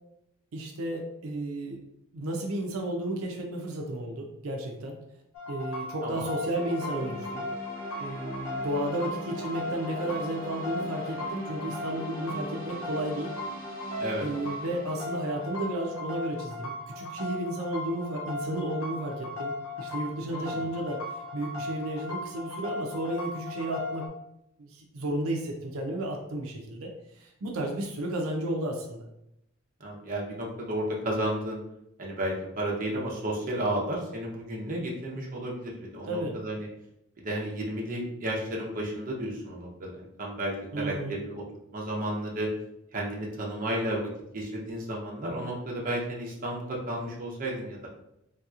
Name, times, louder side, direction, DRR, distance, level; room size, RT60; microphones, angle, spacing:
voice 1, 0.5-1.8 2.1-5.0 5.5-7.4 8.0-13.3 14.2-21.0 21.3-24.1 24.6-29.1 36.1-36.4 40.7-41.2, right 1 dB, 85° right, 1 dB, 0.5 m, -33 dB
sound 1, 5.3-24.1, left 2 dB, 85° left, 0.7 m, -37 dB
sound 2, 6.5-16.5, right 1 dB, 40° left, 0.8 m, -42 dB
voice 2, 20.3-20.7 29.8-31.6 32.0-36.7 37.2-41.4 41.7-42.5 42.9-47.9, right 1 dB, 40° right, -2 dB, 0.7 m, -32 dB
3.3 x 2.8 x 2.4 m, 0.80 s
head